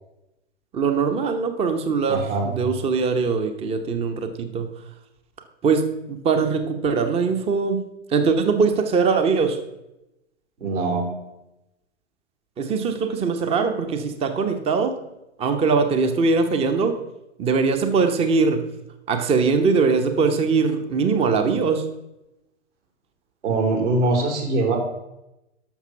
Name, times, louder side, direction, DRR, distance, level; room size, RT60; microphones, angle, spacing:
voice 1, 0.7-4.7 5.6-9.6 12.6-15.0 15.4-17.0 17.4-18.7 19.1-21.8, right 4 dB, 15° right, 8 dB, 0.9 m, -21 dB
voice 2, 2.1-2.5 10.6-11.1 23.4-24.8, right 2 dB, 65° right, 0 dB, 3.6 m, -22 dB
12.0 x 6.6 x 5.6 m, 0.91 s
figure-of-eight pair, 110°, 38 cm